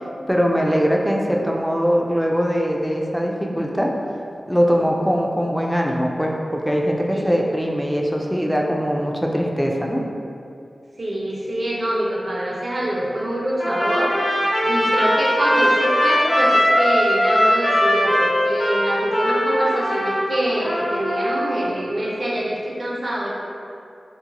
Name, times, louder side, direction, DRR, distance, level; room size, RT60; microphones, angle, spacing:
voice 1, 0.3-3.9 4.5-10.0, equal, ahead, -1 dB, 0.3 m, -21 dB
voice 2, 7.1-7.5 11.0-14.1 14.6-23.3, right 1 dB, 50° right, -4 dB, 0.5 m, -25 dB
Trumpet, 13.6-21.7, equal, 60° left, 1.1 m, -20 dB
2.9 x 2.1 x 2.6 m, 2.5 s
cardioid pair, 45°, 0 cm